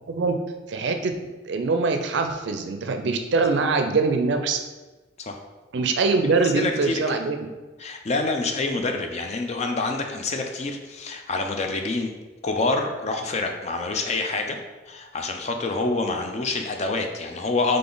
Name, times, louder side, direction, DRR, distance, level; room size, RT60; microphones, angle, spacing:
voice 1, 0.1-0.4 0.7-1.1 1.5-4.6 5.7-7.4, right 4 dB, 65° right, 6 dB, 0.4 m, -23 dB
voice 2, 6.3-7.0 7.8-12.1 12.4-14.6 14.9-17.8, left 3 dB, 35° left, 4 dB, 0.4 m, -27 dB
4.0 x 3.3 x 3.8 m, 1.2 s
head